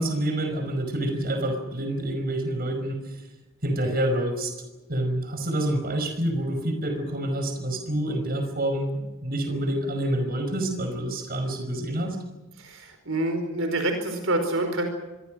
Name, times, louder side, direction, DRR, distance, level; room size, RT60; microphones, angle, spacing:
voice 1, 0.0-3.0 3.6-4.5 4.9-12.2, right 1 dB, 45° right, 6 dB, 5.3 m, -27 dB
voice 2, 12.6-14.9, right 1 dB, 65° right, 6 dB, 4.9 m, -27 dB
26.0 x 22.5 x 6.4 m, 1.1 s
head